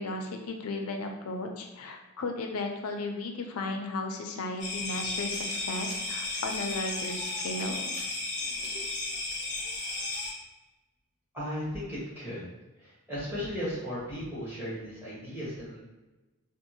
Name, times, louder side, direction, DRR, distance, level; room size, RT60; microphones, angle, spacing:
voice 1, 0.0-7.9, left 2 dB, 85° left, 3 dB, 0.5 m, -35 dB
sound 1, 4.6-10.3, left 2 dB, 35° left, 0.6 m, -34 dB
voice 2, 11.3-12.4 12.8-15.8, equal, 10° right, -9 dB, 1.3 m, -36 dB
3.6 x 2.4 x 2.8 m, 1.1 s
head